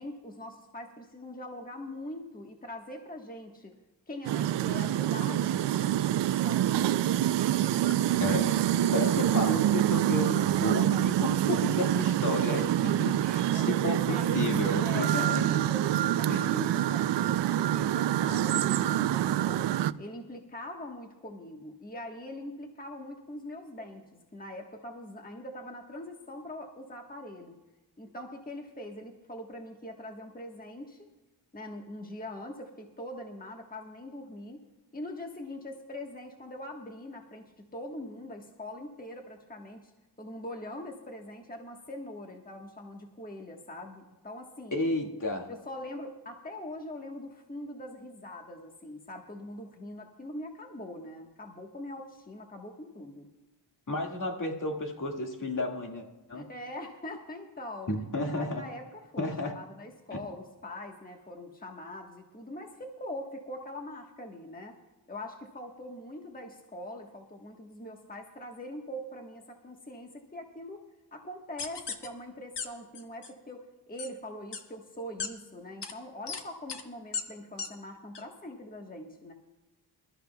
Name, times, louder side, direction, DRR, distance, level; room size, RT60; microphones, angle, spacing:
voice 1, 0.0-3.7 4.1-6.1 6.4-7.0 13.8-14.4 14.8-19.7 20.0-27.5 28.0-31.1 31.5-34.6 34.9-39.9 40.2-44.9 45.5-53.3 56.3-57.9 58.3-64.7 65.1-70.8 71.1-79.3, left 1 dB, 20° left, 2 dB, 1.4 m, -42 dB
sound 1, 4.2-19.9, right 12 dB, 75° right, 0.5 m, -26 dB
voice 2, 8.2-8.5 8.9-15.5 16.3-16.5 44.7-45.5 53.9-56.4 57.9-58.6 59.2-59.5 60.1-60.2, left 2 dB, 45° left, 2 dB, 2.0 m, -32 dB
sound 2, 71.6-72.1 72.6-72.7 72.9-73.3 74.0-74.1 74.5-74.6 75.2-75.3 75.8-75.9 76.3-76.4 76.7-76.8 77.1-77.2 77.6-77.7 78.1-78.2, left 5 dB, 70° left, 1.3 m, -35 dB
22.0 x 13.5 x 2.3 m, 1.1 s
cardioid pair, 80°, 43 cm